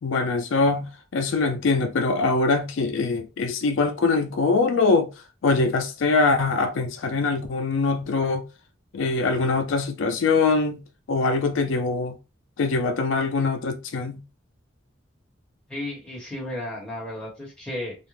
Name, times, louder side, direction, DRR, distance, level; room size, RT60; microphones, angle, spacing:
voice 1, 0.0-5.1 5.4-8.4 8.9-10.8 11.1-12.2 12.6-14.2, left 3 dB, 75° left, 0.4 m, -23 dB
voice 2, 15.7-18.0, left 1 dB, 5° left, 1.0 m, -33 dB
2.4 x 2.1 x 3.1 m
head